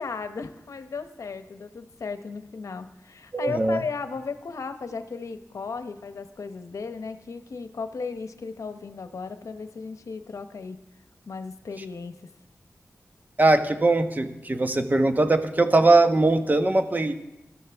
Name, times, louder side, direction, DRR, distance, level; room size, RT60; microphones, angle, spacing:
voice 1, 0.0-10.8 11.3-12.1, left 4 dB, 80° left, 9 dB, 0.8 m, -35 dB
voice 2, 3.3-3.8 13.4-17.1, right 2 dB, 35° right, 8 dB, 1.1 m, -21 dB
18.5 x 12.5 x 3.4 m, 0.90 s
cardioid pair, 55°, 5 cm